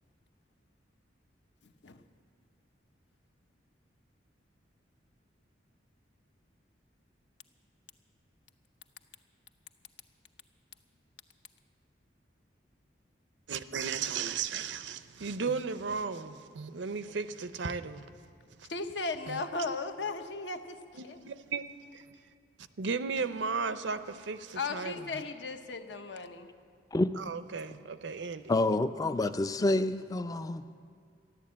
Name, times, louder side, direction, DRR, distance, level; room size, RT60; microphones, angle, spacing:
voice 1, 1.6-2.0 18.7-21.2 24.5-26.5, left 3 dB, 70° left, 0.8 m, -36 dB
voice 2, 13.5-18.0 18.6-18.7 19.3-19.4 21.0-21.6 21.9-22.0 22.8-25.2 27.2-28.5, right 5 dB, 85° right, 0.6 m, -35 dB
voice 3, 28.5-30.7, left 2 dB, 20° left, 0.4 m, -28 dB
13.5 x 10.5 x 8.5 m
head